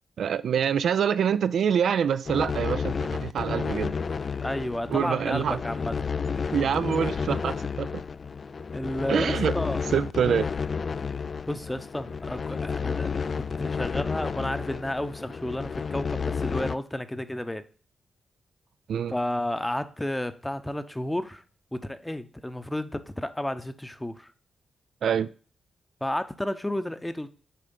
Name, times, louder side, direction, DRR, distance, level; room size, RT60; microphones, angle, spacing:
voice 1, 0.2-3.9 4.9-5.6 6.5-7.9 9.1-9.6 9.9-10.5 18.9-19.1 25.0-25.3, right 8 dB, 75° right, 0.3 m, -25 dB
sound 1, 2.3-16.8, left 5 dB, 50° left, 0.3 m, -31 dB
voice 2, 4.4-5.9 7.2-7.7 8.7-9.8 11.5-17.6 19.1-21.4 21.7-24.3 26.0-27.3, left 1 dB, 10° left, 0.8 m, -32 dB
8.6 x 3.3 x 5.3 m
cardioid pair, 60°, 0 cm